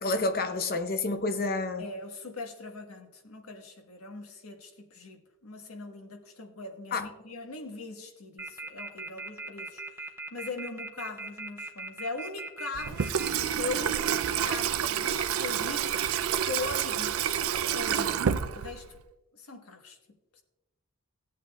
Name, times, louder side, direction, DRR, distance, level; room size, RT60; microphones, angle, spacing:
voice 1, 0.0-1.8 6.9-7.1, left 3 dB, 45° left, 0.8 m, -29 dB
voice 2, 1.8-10.1 10.3-13.1 13.6-16.0 16.4-17.2 17.7-18.9 19.3-20.0 20.3-20.4, left 3 dB, 80° left, 1.3 m, -40 dB
sound 1, 8.4-13.3, right 2 dB, 10° right, 0.5 m, -38 dB
Water tap faucet / Sink (filling or washing), 12.7-19.0, right 8 dB, 70° right, 0.4 m, -29 dB
16.5 x 8.3 x 2.3 m
head